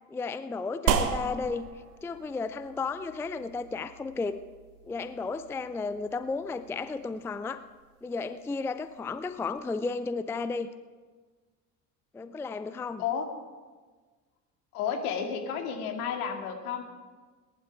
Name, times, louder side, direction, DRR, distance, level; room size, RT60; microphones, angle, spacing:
voice 1, 0.1-1.7 2.0-4.4 4.8-7.6 8.0-10.7 12.1-13.0, left 4 dB, 5° left, 12 dB, 0.4 m, -33 dB
sound 1, 0.9-9.6, right 7 dB, 70° right, 1.2 m, -36 dB
voice 2, 14.7-16.8, left 7 dB, 65° left, 4 dB, 2.1 m, -31 dB
19.5 x 11.0 x 4.9 m, 1.4 s
figure-of-eight pair, 60°, 47 cm